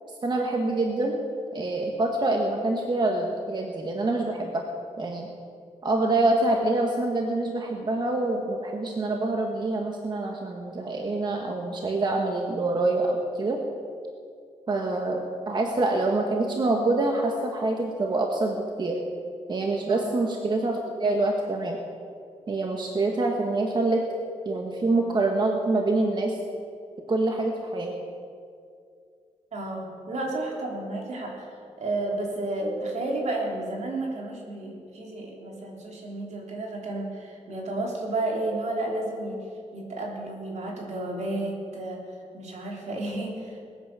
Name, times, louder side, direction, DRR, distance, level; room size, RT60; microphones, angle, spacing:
voice 1, 0.2-1.2 1.5-4.6 5.0-5.3 5.8-13.6 14.7-19.0 19.5-21.8 22.5-24.0 24.4-26.4 27.1-27.9, right 2 dB, 40° right, 1 dB, 1.3 m, -26 dB
voice 2, 29.5-31.5 31.8-39.4 39.7-42.0 42.3-43.6, right 2 dB, 70° right, 0 dB, 3.2 m, -32 dB
21.0 x 9.3 x 6.7 m, 2.4 s
wide cardioid pair, 160°, 12 cm